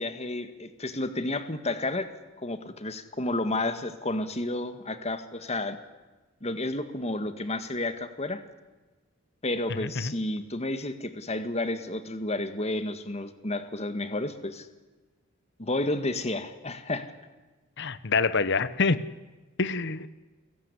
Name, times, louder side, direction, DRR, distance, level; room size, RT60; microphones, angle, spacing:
voice 1, 0.0-2.1 2.4-5.8 6.4-8.4 9.4-14.7 15.6-17.1, left 2 dB, 30° left, 10 dB, 1.8 m, -31 dB
voice 2, 9.8-10.1 17.8-19.0 19.6-20.1, left 4 dB, 60° left, 15 dB, 1.1 m, -26 dB
29.5 x 16.0 x 9.9 m, 1.2 s
head